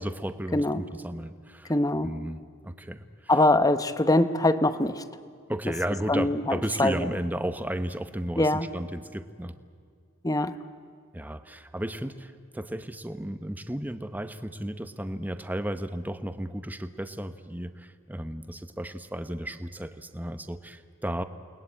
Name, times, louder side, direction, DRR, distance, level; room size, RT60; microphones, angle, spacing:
voice 1, 0.0-1.7 2.0-3.4 5.5-9.6 11.1-21.2, right 1 dB, 10° right, 10 dB, 0.9 m, -34 dB
voice 2, 0.5-0.8 1.7-2.1 3.3-5.0 6.1-7.1 8.4-8.7 10.2-10.5, left 1 dB, 15° left, 12 dB, 0.9 m, -23 dB
29.0 x 20.5 x 8.7 m, 2.1 s
head